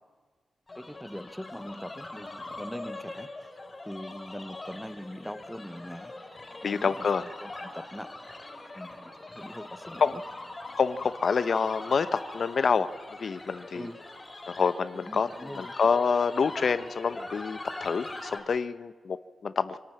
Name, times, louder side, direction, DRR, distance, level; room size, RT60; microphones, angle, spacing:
sound 1, 0.7-18.4, left 2 dB, 25° left, 3.7 m, -42 dB
voice 1, 0.8-3.5 3.8-6.1 6.6-7.0 7.4-8.1 8.7-10.2 13.7-14.0 14.9-15.7, equal, ahead, 11 dB, 0.8 m, -42 dB
voice 2, 6.6-7.2 10.0-10.1 10.7-13.9 14.5-19.8, left 5 dB, 55° left, 14 dB, 0.7 m, -27 dB
24.5 x 12.5 x 8.8 m, 1.4 s
wide cardioid pair, 130°, 0 cm